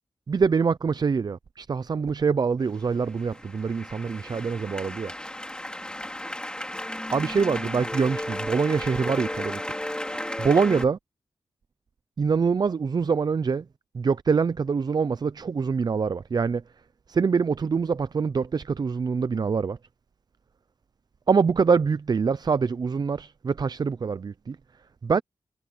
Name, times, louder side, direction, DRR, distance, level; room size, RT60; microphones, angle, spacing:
voice 1, 0.3-5.1 7.1-9.6 10.4-11.0 12.2-13.7 13.9-16.6 17.1-19.8 21.3-24.6 25.0-25.2, right 5 dB, 40° right, 0.4 m, -24 dB
sound 1, 2.7-10.8, left 1 dB, 10° left, 2.9 m, -34 dB
wide cardioid pair, 115°, 10 cm